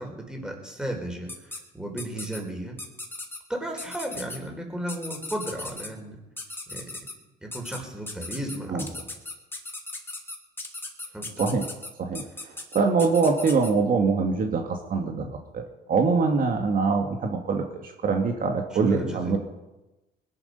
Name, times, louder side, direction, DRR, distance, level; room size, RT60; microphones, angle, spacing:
voice 1, 0.0-2.7 3.5-6.2 6.7-6.9 7.4-9.1 11.1-11.5 18.9-19.4, right 1 dB, 5° right, 2 dB, 4.3 m, -34 dB
sound 1, 1.3-1.6 2.0-2.4 2.8-3.4 3.8-4.4 4.9-5.9 6.4-7.1 7.5-7.8 8.1-13.7, left 2 dB, 10° left, 2.6 m, -37 dB
voice 2, 12.7-14.6 14.9-15.6 15.9-19.4, right 4 dB, 50° right, 3 dB, 2.0 m, -23 dB
20.5 x 11.0 x 5.4 m, 1.0 s
cardioid pair, 95°, 18 cm